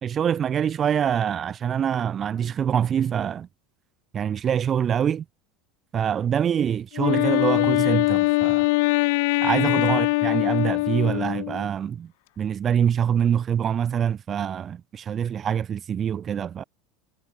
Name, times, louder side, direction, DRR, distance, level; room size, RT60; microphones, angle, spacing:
voice 1, 0.0-3.5 4.1-5.2 5.9-8.7 9.4-12.1 12.4-16.6, right 8 dB, 25° right, 2.2 m, -25 dB
Wind instrument woodwind instrument, 6.9-11.7, left 24 dB, 70° left, 0.8 m, -22 dB
supercardioid pair, 165°, 0 cm